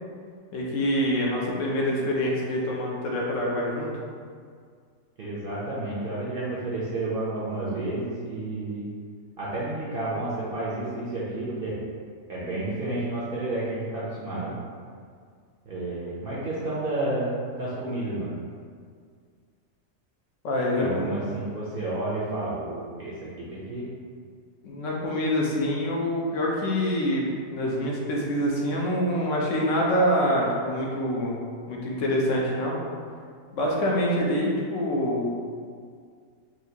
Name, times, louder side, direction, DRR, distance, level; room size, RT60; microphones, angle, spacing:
voice 1, 0.5-3.9 20.4-21.1 24.6-31.4 31.7-32.8 33.5-35.3, equal, 65° left, -3 dB, 0.9 m, -25 dB
voice 2, 5.2-8.9 9.4-11.8 12.3-14.5 15.7-18.4 20.8-23.9, right 2 dB, 55° right, -8 dB, 0.6 m, -31 dB
4.4 x 2.4 x 2.8 m, 2.1 s
omnidirectional pair, 1.5 m